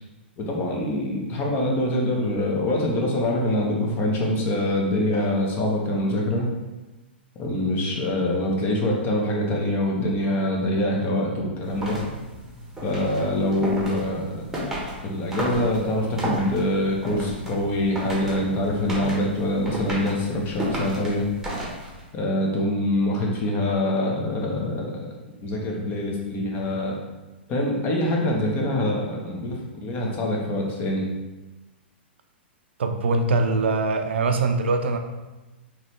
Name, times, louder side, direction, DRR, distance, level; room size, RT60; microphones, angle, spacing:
voice 1, 0.4-6.5 7.4-12.0 12.8-14.4 15.0-21.3 22.1-25.1 25.4-26.9 27.5-31.1, left 1 dB, 30° left, -1 dB, 1.0 m, -24 dB
sound 1, 11.6-22.1, equal, 5° right, 1.1 m, -33 dB
voice 2, 32.8-35.0, right 3 dB, 75° right, 6 dB, 0.4 m, -22 dB
4.0 x 3.0 x 3.1 m, 1.1 s
hypercardioid pair, 110°, 6 cm